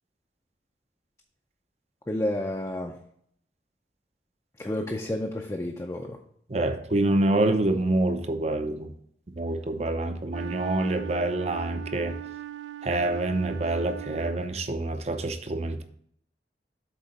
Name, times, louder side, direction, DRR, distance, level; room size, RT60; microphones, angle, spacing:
voice 1, 2.1-3.0 4.6-6.2, left 1 dB, 15° left, 2 dB, 0.5 m, -30 dB
voice 2, 6.5-8.9 9.4-12.1 12.8-15.8, right 2 dB, 35° right, 8 dB, 0.6 m, -26 dB
Wind instrument woodwind instrument, 10.3-14.8, right 12 dB, 90° right, 0.4 m, -40 dB
8.2 x 3.8 x 5.1 m, 0.68 s
head